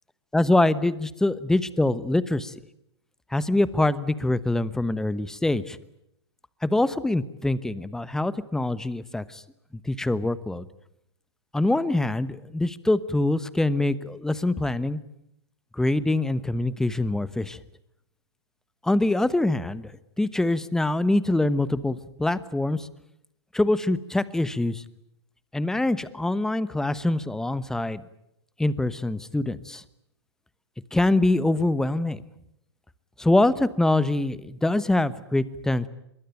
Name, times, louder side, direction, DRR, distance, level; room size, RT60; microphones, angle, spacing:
voice 1, 0.3-2.5 3.3-5.8 6.6-9.4 9.8-10.7 11.5-15.0 15.7-17.6 18.8-19.9 20.2-22.9 23.5-24.8 25.5-28.0 28.6-29.8 30.9-32.2 33.2-35.9, left 2 dB, 5° left, 17 dB, 1.1 m, -24 dB
24.0 x 22.5 x 9.1 m, 0.78 s
hypercardioid pair, 120°, 14 cm